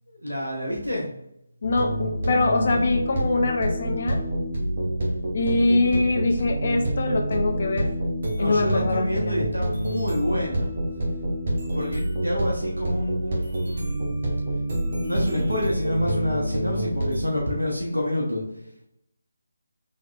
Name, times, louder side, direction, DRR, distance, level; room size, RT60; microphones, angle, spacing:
voice 1, 0.1-1.1 8.3-10.7 11.6-14.1 15.0-18.4, equal, 85° right, -2 dB, 0.9 m, -28 dB
voice 2, 1.6-4.2 5.3-7.9 8.4-9.4, left 3 dB, 45° left, 3 dB, 0.4 m, -24 dB
sound 1, 1.6-17.2, right 1 dB, 45° right, 1.1 m, -27 dB
4.0 x 3.1 x 2.4 m, 0.82 s
figure-of-eight pair, 150°, 0 cm